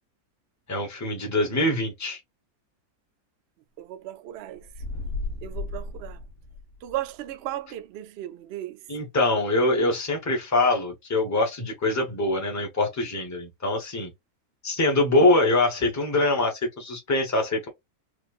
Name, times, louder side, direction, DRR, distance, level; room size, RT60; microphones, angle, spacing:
voice 1, 0.7-2.2 8.9-14.1 14.6-17.7, left 2 dB, 15° left, 0.9 m, -24 dB
voice 2, 3.8-4.7 5.4-6.2 6.8-8.9, right 13 dB, 70° right, 0.6 m, -36 dB
sound 1, 4.6-7.1, left 3 dB, 65° left, 1.6 m, -34 dB
4.7 x 2.4 x 2.4 m
omnidirectional pair, 1.6 m